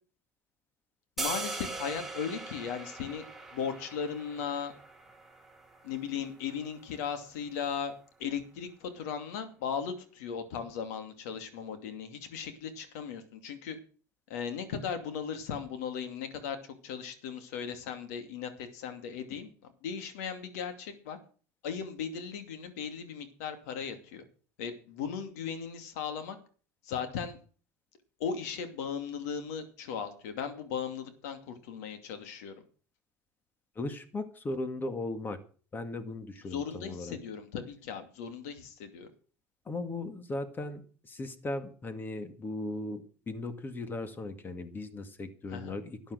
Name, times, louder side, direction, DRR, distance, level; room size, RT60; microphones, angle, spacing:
voice 1, 1.2-3.2 3.5-4.7 5.8-7.9 8.2-13.8 14.3-16.6 16.8-21.2 21.6-24.2 24.6-26.4 26.8-27.4 28.2-32.5 36.4-39.1 45.5-45.7, left 7 dB, 90° left, 8 dB, 2.6 m, -37 dB
sound 1, 1.2-7.3, right 3 dB, ahead, 2.5 m, -41 dB
voice 2, 33.8-35.4 35.7-37.2 39.7-46.1, left 2 dB, 25° left, 10 dB, 2.0 m, -37 dB
13.0 x 9.2 x 6.4 m, 0.41 s
supercardioid pair, 120°, 8 cm